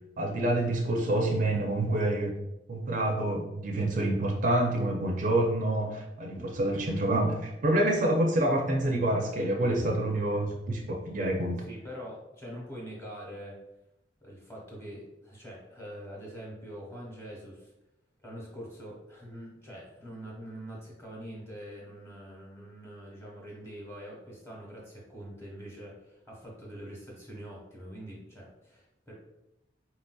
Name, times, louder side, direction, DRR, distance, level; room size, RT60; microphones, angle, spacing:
voice 1, 0.2-2.3 2.7-11.6, right 1 dB, 45° right, 1 dB, 0.4 m, -27 dB
voice 2, 11.7-13.6 14.2-17.7 18.2-29.1, equal, 15° left, -4 dB, 1.0 m, -44 dB
4.0 x 2.6 x 2.2 m, 0.90 s
head